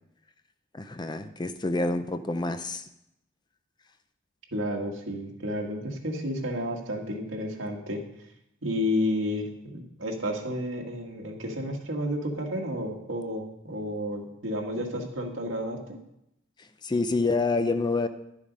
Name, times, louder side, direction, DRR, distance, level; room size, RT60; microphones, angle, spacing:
voice 1, 0.7-2.8 16.6-18.1, left 3 dB, 20° left, 9 dB, 0.5 m, -27 dB
voice 2, 4.5-8.0 8.6-16.0, left 1 dB, 75° right, 1 dB, 1.8 m, -31 dB
11.0 x 7.2 x 5.3 m, 0.81 s
head